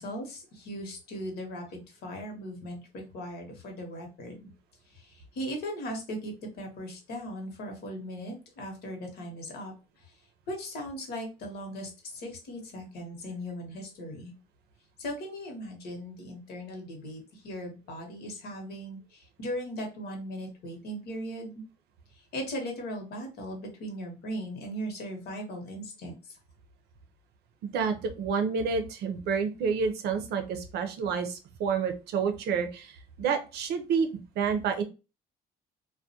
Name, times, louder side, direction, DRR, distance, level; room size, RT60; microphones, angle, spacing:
voice 1, 0.0-4.5 4.9-9.7 10.5-14.3 15.0-21.5 22.3-26.4, equal, 70° left, 2 dB, 1.0 m, -38 dB
voice 2, 27.7-34.8, right 6 dB, 75° right, 6 dB, 0.6 m, -29 dB
2.3 x 2.2 x 2.7 m, 0.31 s
cardioid pair, 110°, 17 cm